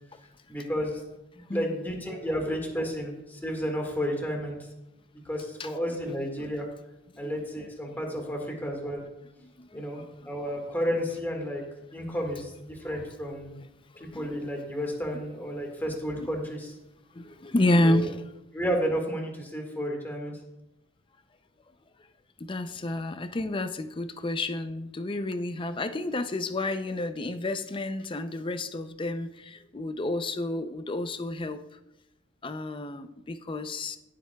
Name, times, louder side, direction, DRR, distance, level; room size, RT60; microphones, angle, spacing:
voice 1, 0.5-1.0 1.3-4.6 5.3-6.7 7.2-9.0 9.7-11.6 11.9-13.6 14.0-16.7 17.8-18.1 18.5-20.4, equal, 10° left, 0 dB, 1.8 m, -32 dB
voice 2, 9.4-10.1 13.9-14.3 17.1-18.2 22.4-31.6 32.4-34.0, left 1 dB, 25° left, 10 dB, 0.5 m, -30 dB
17.0 x 7.6 x 2.3 m, 0.94 s
head